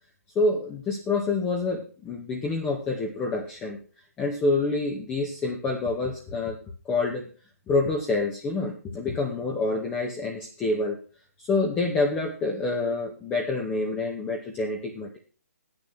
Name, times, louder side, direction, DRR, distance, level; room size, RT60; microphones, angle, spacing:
voice 1, 0.3-3.8 4.2-6.6 6.8-7.3 7.7-11.0 11.4-15.2, left 3 dB, 15° left, 1 dB, 1.8 m, -27 dB
10.5 x 8.3 x 6.1 m, 0.37 s
figure-of-eight pair, 140°, 8 cm